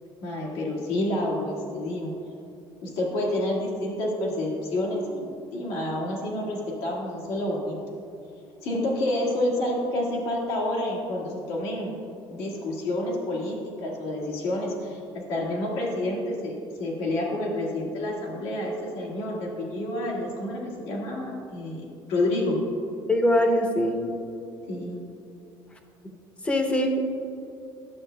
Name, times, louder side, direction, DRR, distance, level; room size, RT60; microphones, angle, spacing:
voice 1, 0.2-2.1 2.8-7.8 8.6-12.0 12.3-15.0 15.3-22.6 24.7-24.9, left 1 dB, 80° left, -4 dB, 1.7 m, -29 dB
voice 2, 23.1-24.0 26.4-27.1, left 1 dB, 15° left, 3 dB, 0.7 m, -22 dB
12.0 x 7.6 x 2.2 m, 2.7 s
cardioid pair, 160°, 9 cm